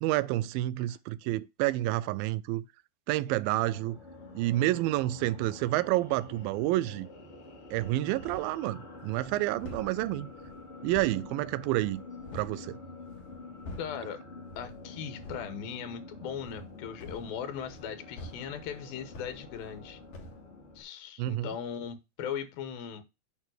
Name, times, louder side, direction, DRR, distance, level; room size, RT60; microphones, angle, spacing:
voice 1, 0.0-2.7 3.1-4.0 4.4-7.1 7.7-10.3 10.8-12.0 12.3-12.8 21.2-21.6, right 16 dB, 85° right, 2.3 m, -29 dB
sound 1, 3.5-20.8, left 3 dB, 20° left, 1.2 m, -48 dB
sound 2, 7.7-8.6 9.0-12.6 13.0-14.1 14.5-14.8 15.1-15.5 16.4-19.9 20.1-20.4, left 2 dB, 70° left, 3.2 m, -47 dB
voice 2, 13.8-14.2 14.6-20.0 20.8-23.0, left 8 dB, 85° left, 2.9 m, -38 dB
8.8 x 3.2 x 6.3 m
omnidirectional pair, 4.2 m